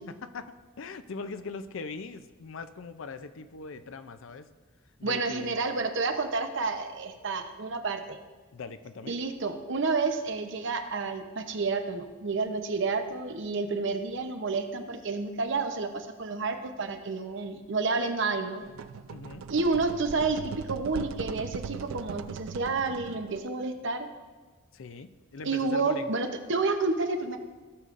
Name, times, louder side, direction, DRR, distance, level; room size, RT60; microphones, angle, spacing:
voice 1, 0.1-4.5 5.0-5.7 8.5-9.1 19.1-19.4 24.7-26.1, left 4 dB, 70° left, 11 dB, 0.5 m, -41 dB
voice 2, 5.0-8.2 9.1-18.6 19.5-24.1 25.4-27.4, right 3 dB, 65° right, 6 dB, 0.8 m, -30 dB
sound 1, 18.6-23.5, right 6 dB, 80° right, 0.3 m, -40 dB
16.0 x 6.7 x 2.5 m, 1.3 s
head